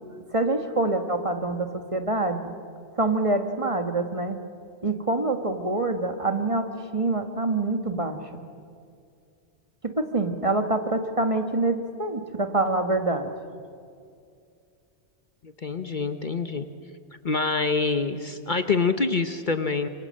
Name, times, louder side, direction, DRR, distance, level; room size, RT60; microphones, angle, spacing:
voice 1, 0.3-2.5 3.0-4.4 4.8-6.7 6.9-8.2 9.8-13.3, right 2 dB, 30° right, 6 dB, 1.6 m, -25 dB
voice 2, 15.4-16.7 17.2-19.9, left 4 dB, 45° left, 9 dB, 1.1 m, -26 dB
26.5 x 25.0 x 7.7 m, 2.4 s
omnidirectional pair, 1.2 m